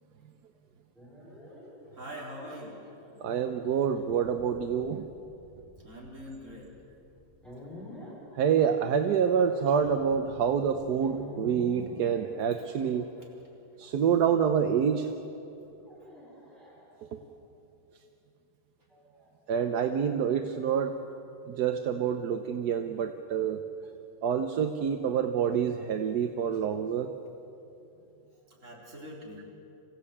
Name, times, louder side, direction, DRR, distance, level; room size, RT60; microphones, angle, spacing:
sound 1, 1.0-13.6 14.4-15.0 15.8-17.3 18.9-20.3, left 1 dB, ahead, 7.0 m, -49 dB
voice 1, 1.9-2.8 5.8-6.7 12.8-12.9 13.8-14.2 15.6-15.8 28.5-29.4, equal, 35° right, -4 dB, 4.8 m, -44 dB
voice 2, 3.2-5.1 8.3-13.1 13.8-15.1 17.0-17.2 19.5-21.0 21.5-23.6 24.2-27.1, right 7 dB, 60° right, 6 dB, 1.2 m, -27 dB
26.5 x 15.5 x 8.6 m, 2.8 s
omnidirectional pair, 2.2 m